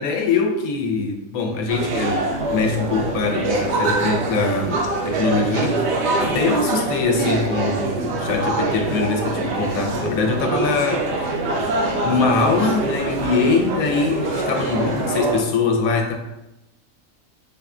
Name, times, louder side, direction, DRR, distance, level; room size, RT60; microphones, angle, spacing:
voice 1, 0.0-2.2 2.5-11.7 12.0-16.1, left 4 dB, 90° left, 3 dB, 1.1 m, -23 dB
sound 1, 1.7-15.4, right 2 dB, 65° right, 0.7 m, -24 dB
5.1 x 2.2 x 2.4 m, 0.95 s
omnidirectional pair, 1.4 m